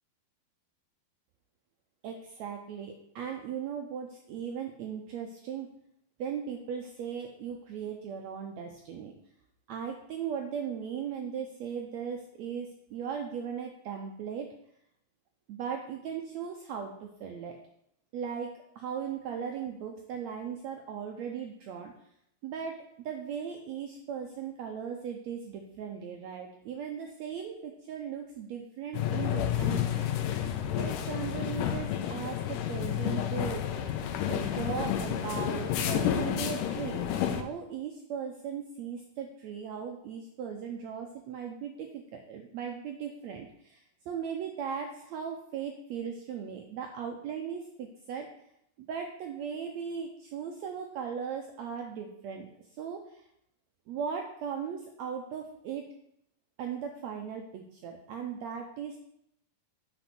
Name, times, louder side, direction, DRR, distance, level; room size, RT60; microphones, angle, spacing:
voice 1, 2.0-5.7 6.2-9.1 9.7-14.5 15.5-17.6 18.1-18.5 18.7-21.9 22.4-33.8 34.3-48.3 48.9-52.5 52.8-53.2 53.9-55.8 56.6-59.0, right 7 dB, 85° right, 3 dB, 1.5 m, -38 dB
sound 1, 28.9-37.4, left 10 dB, 75° left, 2.2 m, -30 dB
8.2 x 5.4 x 6.0 m, 0.74 s
omnidirectional pair, 4.1 m